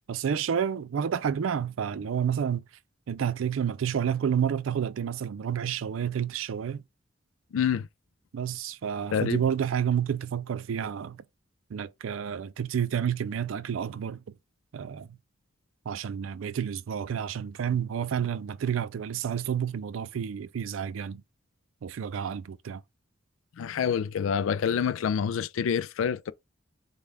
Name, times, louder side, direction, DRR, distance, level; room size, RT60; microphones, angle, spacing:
voice 1, 0.1-2.6 3.1-6.8 8.3-11.2 11.7-14.2 14.7-15.1 15.9-21.2 21.8-22.8, right 8 dB, 85° right, 0.4 m, -30 dB
voice 2, 7.5-7.9 9.1-9.4 23.6-26.3, left 7 dB, 80° left, 0.3 m, -27 dB
5.2 x 2.3 x 3.3 m
head